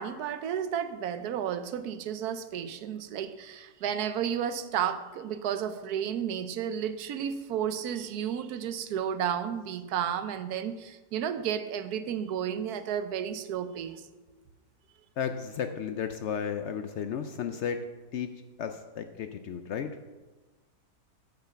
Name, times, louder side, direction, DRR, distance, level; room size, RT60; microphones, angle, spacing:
voice 1, 0.0-14.1, right 9 dB, 70° right, 11 dB, 1.1 m, -32 dB
voice 2, 15.2-17.8 18.1-18.3 18.6-19.9, left 7 dB, 85° left, 8 dB, 0.6 m, -33 dB
9.1 x 5.7 x 6.8 m, 1.2 s
omnidirectional pair, 1.8 m